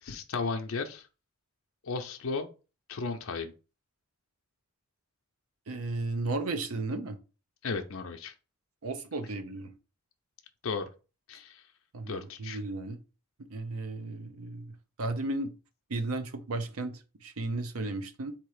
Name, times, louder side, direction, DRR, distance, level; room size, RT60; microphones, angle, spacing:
voice 1, 0.0-1.1 1.8-2.5 2.9-3.5 7.6-8.3 10.6-10.8 11.3-11.6 12.1-12.6, left 4 dB, 75° left, 0.6 m, -34 dB
voice 2, 5.7-7.2 8.8-9.7 11.9-13.0 13.4-15.5 15.9-18.3, right 2 dB, 85° right, 0.7 m, -34 dB
3.7 x 2.9 x 4.8 m
head